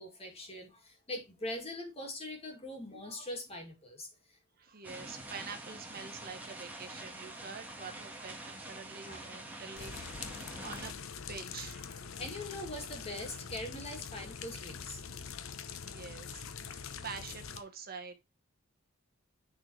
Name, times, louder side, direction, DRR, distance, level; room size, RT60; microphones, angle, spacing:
voice 1, 0.0-4.1 9.1-9.3 12.2-15.0, left 1 dB, 30° left, 2.5 m, -42 dB
voice 2, 4.6-12.2 13.0-13.4 15.8-18.2, right 5 dB, 50° right, 1.2 m, -47 dB
sound 1, 4.8-10.9, right 1 dB, 10° right, 1.5 m, -46 dB
sound 2, 9.8-17.6, left 6 dB, 90° left, 0.8 m, -44 dB
9.8 x 4.3 x 3.2 m
head